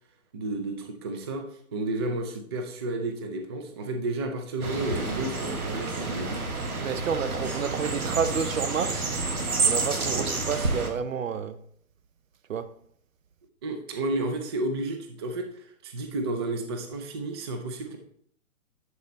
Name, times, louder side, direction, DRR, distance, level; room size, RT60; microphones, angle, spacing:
voice 1, 0.3-6.4 10.1-10.3 13.6-18.0, right 2 dB, 20° right, 0.4 m, -32 dB
sound 1, 4.6-10.9, right 3 dB, 90° right, 1.3 m, -29 dB
voice 2, 6.8-9.1 9.7-11.6 12.5-12.7, right 7 dB, 65° right, 0.7 m, -30 dB
11.0 x 4.1 x 3.2 m
figure-of-eight pair, 125°, 42 cm